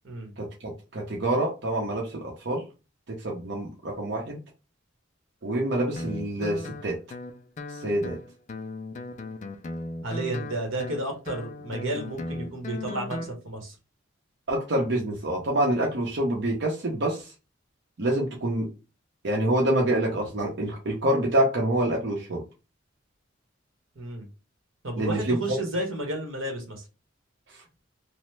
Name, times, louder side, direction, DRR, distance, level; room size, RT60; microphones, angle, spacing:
voice 1, 0.4-2.6 3.1-4.4 5.4-7.0 7.8-8.2 14.5-17.3 18.0-18.7 19.2-22.4 25.0-25.4, right 1 dB, 60° right, 0.7 m, -26 dB
Guitar, 6.0-13.3, left 2 dB, 35° left, 0.3 m, -37 dB
voice 2, 10.0-13.7 24.0-24.3 24.8-26.8, right 1 dB, 90° right, 1.1 m, -32 dB
2.9 x 2.1 x 3.2 m
head